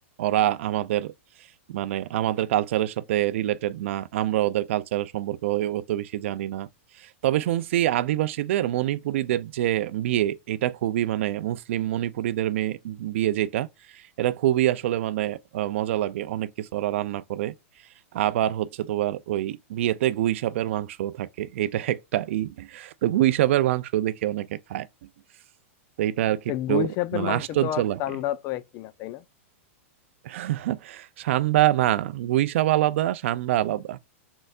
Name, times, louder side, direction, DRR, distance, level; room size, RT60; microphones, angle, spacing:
voice 1, 0.2-1.1 1.7-6.7 7.0-13.7 13.9-17.5 18.1-24.9 26.0-28.0 30.2-34.0, right 13 dB, 65° right, 0.4 m, -25 dB
voice 2, 26.5-29.2, left 13 dB, 40° left, 0.4 m, -30 dB
4.2 x 3.9 x 2.4 m
hypercardioid pair, 140°, 7 cm